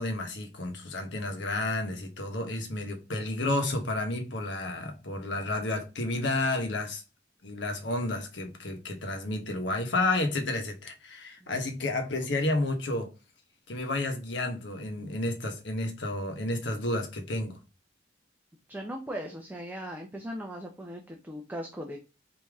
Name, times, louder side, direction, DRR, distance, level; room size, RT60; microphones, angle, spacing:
voice 1, 0.0-7.0 7.4-13.1 13.7-17.6, left 2 dB, 70° left, 1.2 m, -31 dB
voice 2, 18.7-22.0, equal, 10° right, 0.7 m, -38 dB
5.1 x 2.8 x 3.5 m
head